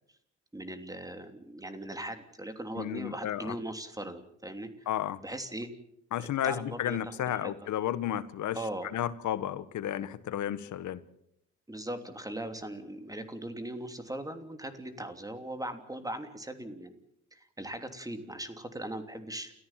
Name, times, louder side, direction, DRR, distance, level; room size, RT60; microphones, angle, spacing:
voice 1, 0.5-4.9 5.2-5.7 6.4-7.7 8.5-8.9 11.7-17.0 17.3-19.5, right 1 dB, 10° right, 8 dB, 3.1 m, -39 dB
voice 2, 2.8-3.5 4.9-5.2 6.1-8.6 8.9-11.0, left 11 dB, 75° left, 14 dB, 1.4 m, -32 dB
29.5 x 14.5 x 7.5 m, 0.77 s
cardioid pair, 90°, 30 cm